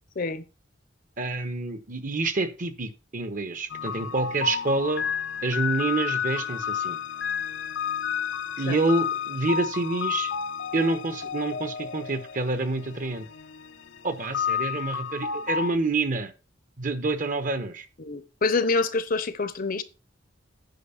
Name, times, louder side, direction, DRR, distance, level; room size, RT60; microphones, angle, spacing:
voice 1, 1.2-5.0 5.4-7.0 8.6-10.3 10.7-13.3 14.0-16.3 16.8-17.9, right 3 dB, 45° right, 1.2 m, -27 dB
sound 1, 3.7-15.8, left 7 dB, 75° left, 0.7 m, -31 dB
voice 2, 18.0-19.8, left 3 dB, 50° left, 0.8 m, -26 dB
9.4 x 5.4 x 5.7 m
head